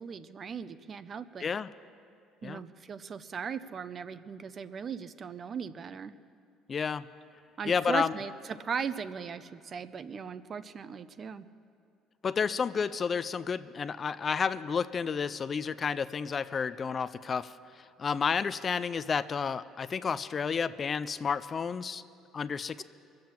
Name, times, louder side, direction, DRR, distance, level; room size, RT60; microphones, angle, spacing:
voice 1, 0.0-1.4 2.4-6.1 7.6-11.5, right 6 dB, 35° right, 13 dB, 0.5 m, -38 dB
voice 2, 6.7-7.0 7.7-8.1 12.2-17.5 18.0-22.0 22.3-22.8, left 6 dB, 35° left, 15 dB, 0.3 m, -31 dB
22.5 x 7.6 x 7.3 m, 2.4 s
cardioid pair, 115°, 0 cm